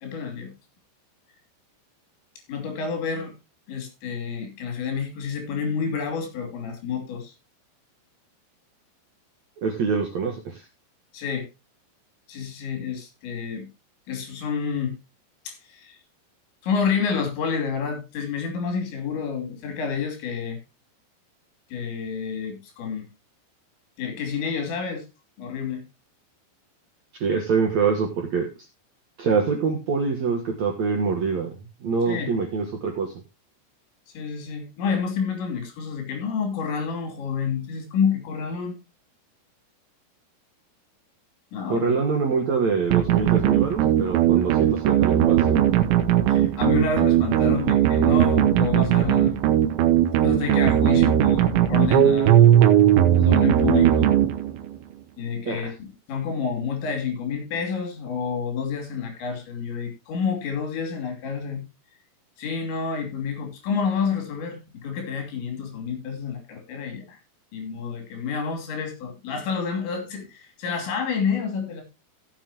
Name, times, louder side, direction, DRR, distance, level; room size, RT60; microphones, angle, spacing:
voice 1, 0.0-0.5 2.5-3.3 3.7-7.3 11.1-11.5 12.3-13.7 14.1-15.0 15.5-16.0 16.6-20.6 21.7-23.1 24.0-25.1 25.4-25.8 32.1-32.4 34.2-38.8 41.5-41.9 46.3-49.5 50.2-52.7 53.1-54.1 55.2-61.7 62.4-67.2 67.5-71.8, left 6 dB, 80° left, 5 dB, 5.1 m, -29 dB
voice 2, 9.6-10.6 27.2-28.5 29.2-31.5 31.8-33.1 41.7-45.6 55.5-55.6, right 5 dB, 65° right, 2 dB, 1.8 m, -25 dB
sound 1, 42.9-54.8, right 11 dB, 85° right, 3.4 m, -18 dB
16.0 x 7.6 x 2.9 m, 0.25 s
omnidirectional pair, 5.1 m